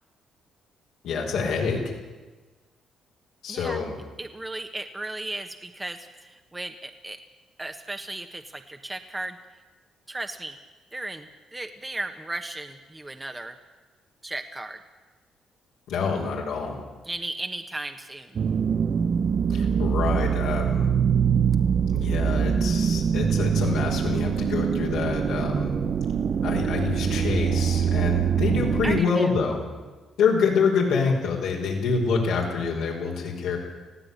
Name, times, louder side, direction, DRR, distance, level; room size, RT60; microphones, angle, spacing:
voice 1, 1.0-1.9 3.4-3.9 15.9-16.8 19.5-20.9 21.9-25.8 26.4-29.6 30.2-33.6, left 5 dB, 85° left, -2 dB, 5.2 m, -26 dB
voice 2, 3.5-3.8 4.2-7.2 7.6-9.6 10.1-10.6 10.9-13.6 14.2-14.8 17.0-18.4 28.8-29.3, right 2 dB, 15° right, 6 dB, 1.4 m, -35 dB
Fall-And-Sweep, 18.4-29.0, right 7 dB, 55° right, 0.9 m, -24 dB
19.5 x 15.0 x 9.7 m, 1.3 s
cardioid pair, 90°, 0 cm